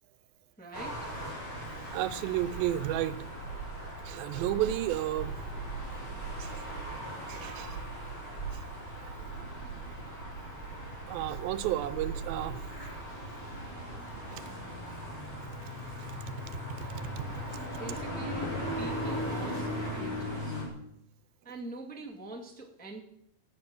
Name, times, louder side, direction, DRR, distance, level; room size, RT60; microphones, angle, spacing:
voice 1, 0.6-1.1 17.7-20.6 21.4-23.0, right 2 dB, 5° left, -1 dB, 1.1 m, -44 dB
sound 1, 0.7-20.7, right 1 dB, 30° left, 4.7 m, -38 dB
voice 2, 1.9-3.2 4.1-5.3 6.4-6.6 7.3-7.8 9.0-9.2 11.1-12.6 14.3-14.4 17.2-17.3, right 13 dB, 90° right, 16 dB, 2.5 m, -32 dB
16.5 x 8.4 x 6.1 m, 0.70 s
omnidirectional pair, 4.1 m